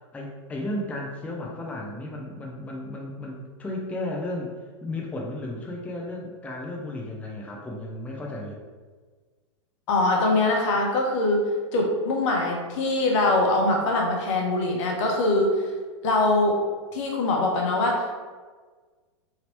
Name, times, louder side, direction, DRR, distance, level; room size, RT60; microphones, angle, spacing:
voice 1, 0.1-4.5 4.8-8.6, left 1 dB, 10° left, -1 dB, 0.4 m, -34 dB
voice 2, 9.9-11.4 11.7-15.6 16.0-16.6 16.9-18.1, left 2 dB, 65° left, 0 dB, 0.9 m, -23 dB
2.9 x 2.8 x 3.0 m, 1.4 s
hypercardioid pair, 120°, 17 cm